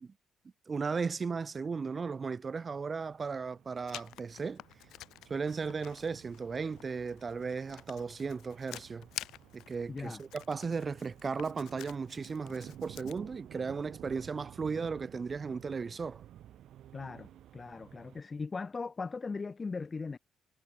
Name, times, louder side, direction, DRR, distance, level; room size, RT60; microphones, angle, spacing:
voice 1, 0.7-4.6 5.3-9.1 9.5-16.2, right 5 dB, 35° right, 0.4 m, -36 dB
sound 1, 2.4-18.2, right 12 dB, 75° right, 1.7 m, -54 dB
Writing, 3.9-13.2, left 14 dB, 85° left, 0.7 m, -49 dB
voice 2, 9.9-10.2 16.9-20.2, left 4 dB, 30° left, 0.5 m, -39 dB
cardioid pair, 90°, 0 cm